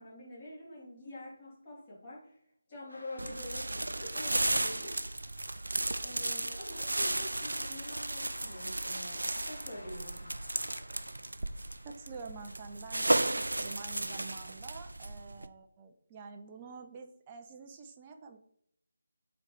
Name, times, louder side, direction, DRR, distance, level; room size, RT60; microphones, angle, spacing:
voice 1, 0.0-2.4 2.7-5.0 6.0-10.3, left 1 dB, 25° left, -6 dB, 3.2 m, -46 dB
sound 1, 2.9-13.9, left 1 dB, 75° left, 1.9 m, -55 dB
sound 2, 3.2-15.5, right 2 dB, 65° right, 0.5 m, -34 dB
voice 2, 11.8-18.4, right 4 dB, 20° right, 4 dB, 0.6 m, -47 dB
7.3 x 4.1 x 5.0 m, 0.70 s
figure-of-eight pair, 155°, 0 cm